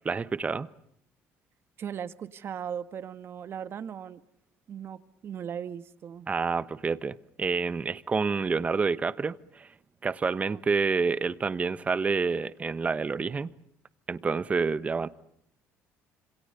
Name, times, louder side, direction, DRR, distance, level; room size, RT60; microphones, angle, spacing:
voice 1, 0.0-0.7 6.3-9.7 10.0-13.5 14.1-15.1, right 4 dB, 25° right, 16 dB, 1.1 m, -28 dB
voice 2, 1.8-4.2 4.7-6.3 10.5-10.6, right 8 dB, 45° right, 13 dB, 1.5 m, -38 dB
27.5 x 26.0 x 6.9 m, 0.75 s
cardioid pair, 120°, 6 cm